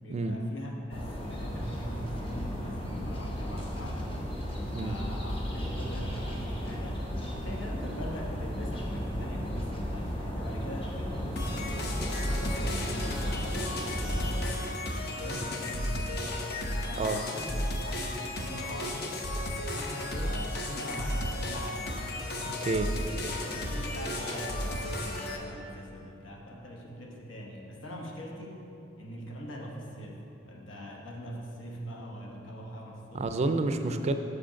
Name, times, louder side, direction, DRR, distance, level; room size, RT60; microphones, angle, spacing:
voice 1, 0.0-4.2 4.7-16.2 16.7-19.2 19.7-22.0 23.1-28.6 29.0-33.5, equal, 85° left, -1 dB, 1.1 m, -42 dB
sound 1, 0.9-14.5, equal, 30° left, 0.9 m, -34 dB
sound 2, 11.4-25.4, left 1 dB, 60° left, 0.7 m, -34 dB
voice 2, 22.5-22.9 33.1-34.1, right 2 dB, 35° right, 8 dB, 0.3 m, -29 dB
6.4 x 5.1 x 5.7 m, 2.8 s
head